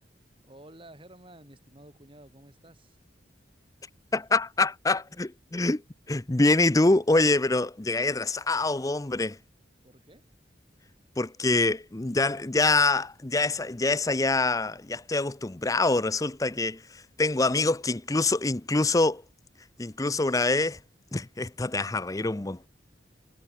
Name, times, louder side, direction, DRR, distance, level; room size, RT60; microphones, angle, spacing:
voice 1, 0.4-3.0 9.8-10.3, right 1 dB, 30° right, 5.9 m, -52 dB
voice 2, 4.1-5.8 6.1-9.4 11.2-19.2 19.8-20.8 21.1-22.7, left 2 dB, 20° left, 0.6 m, -25 dB
head